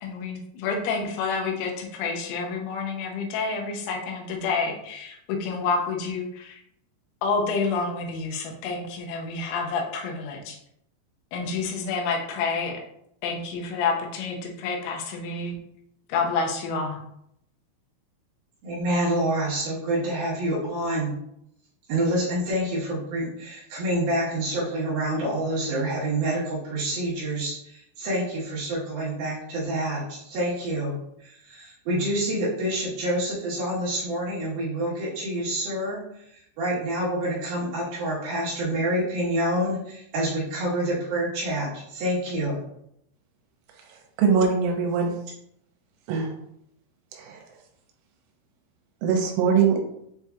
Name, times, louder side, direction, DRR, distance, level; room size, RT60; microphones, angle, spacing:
voice 1, 0.0-6.6 7.2-10.6 11.3-12.8 13.2-15.6 16.1-17.0, left 4 dB, 90° left, 2 dB, 3.3 m, -29 dB
voice 2, 18.6-21.1 21.9-36.0 36.3-42.6, right 1 dB, 70° right, -7 dB, 2.6 m, -27 dB
voice 3, 44.2-45.1 46.1-46.3 47.1-47.4 49.0-49.8, right 6 dB, 90° right, 2 dB, 3.2 m, -22 dB
7.8 x 2.7 x 2.3 m, 0.74 s
omnidirectional pair, 5.5 m